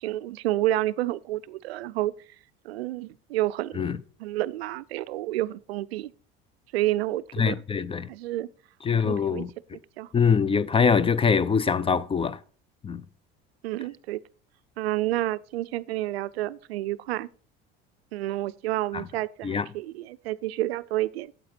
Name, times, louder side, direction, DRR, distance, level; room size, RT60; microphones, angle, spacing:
voice 1, 0.0-2.1 2.6-3.8 4.2-6.1 6.7-7.6 8.1-8.5 9.0-9.4 9.7-10.1 13.6-14.2 14.8-17.3 18.1-21.3, right 15 dB, 90° right, 0.5 m, -29 dB
voice 2, 7.4-8.1 8.8-9.5 10.1-12.4 12.8-13.0 18.9-19.1 19.4-19.7, left 6 dB, 20° left, 0.5 m, -23 dB
8.6 x 8.0 x 4.3 m
hypercardioid pair, 80°, 30 cm